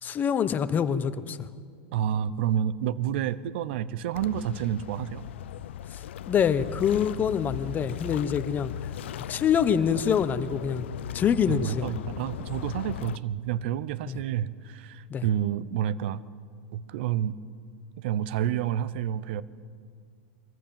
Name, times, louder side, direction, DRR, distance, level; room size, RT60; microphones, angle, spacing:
voice 1, 0.0-1.5 5.9-8.7 9.3-10.8 11.1-11.9 14.1-14.2 15.1-15.3, left 8 dB, 30° left, 13 dB, 1.0 m, -25 dB
voice 2, 1.9-5.2 11.5-16.2 16.7-17.4 18.0-19.4, right 10 dB, 70° right, 18 dB, 0.8 m, -29 dB
sound 1, 4.1-13.2, left 11 dB, 80° left, 0.5 m, -37 dB
22.5 x 14.5 x 8.8 m, 2.2 s
hypercardioid pair, 115°, 6 cm